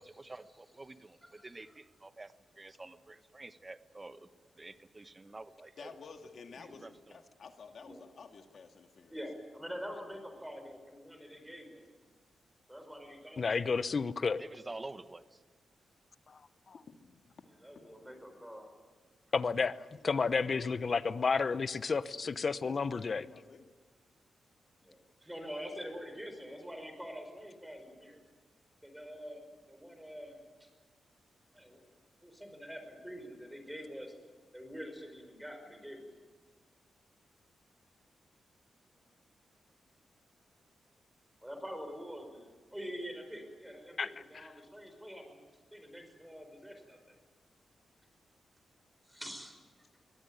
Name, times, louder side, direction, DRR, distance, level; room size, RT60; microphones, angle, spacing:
voice 1, 0.0-4.3 4.5-5.9 6.5-7.2 13.4-13.5 14.4-15.4 25.2-25.3, right 2 dB, 20° right, 11 dB, 1.2 m, -49 dB
voice 2, 5.8-9.1 17.0-17.9 19.5-21.4 22.1-23.7, left 5 dB, 60° left, 5 dB, 2.1 m, -53 dB
voice 3, 9.1-11.8 12.7-13.5 17.6-18.7 24.8-25.0 25.3-28.2 28.8-30.7 31.5-31.9 32.2-34.1 34.5-36.1 41.4-45.4 45.7-47.2 49.0-49.6, equal, 5° right, 5 dB, 5.3 m, -46 dB
voice 4, 13.4-14.4 16.3-16.4 16.7-16.8 19.3-19.8 20.0-23.3 44.0-44.1, left 5 dB, 45° left, 15 dB, 0.8 m, -31 dB
23.5 x 18.5 x 9.3 m, 1.4 s
cardioid pair, 105°, 0 cm